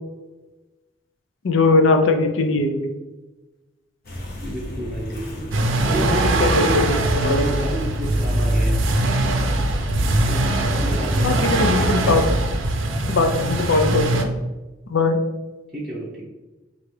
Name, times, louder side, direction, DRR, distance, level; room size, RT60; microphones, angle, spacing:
voice 1, 1.4-2.9 6.4-7.6 11.2-12.2 13.1-14.3 14.9-15.2, left 3 dB, 80° left, 5 dB, 0.5 m, -20 dB
sound 1, 4.0-11.3, equal, 50° left, 0.8 m, -34 dB
voice 2, 4.4-5.5 5.8-6.8 7.1-8.8 10.3-11.4 15.7-16.2, right 1 dB, ahead, -8 dB, 0.7 m, -29 dB
sound 2, 5.5-14.2, right 1 dB, 80° right, 0.5 m, -21 dB
4.4 x 2.5 x 3.2 m, 1.1 s
head